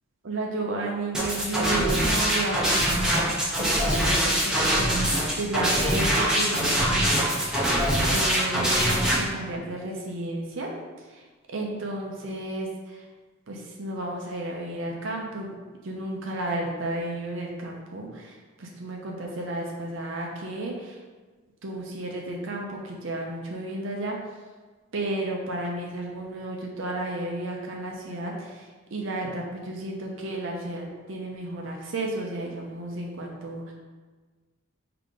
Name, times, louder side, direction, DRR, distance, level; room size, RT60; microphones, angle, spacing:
voice 1, 0.2-3.1 3.6-7.3 8.1-10.7 11.1-11.2 11.5-13.0 13.5-15.6 15.8-21.0 21.6-24.2 24.9-33.7, right 2 dB, 65° right, -1 dB, 0.6 m, -33 dB
sound 1, 1.1-9.2, equal, 5° right, 0.6 m, -23 dB
4.9 x 2.9 x 3.6 m, 1.4 s
head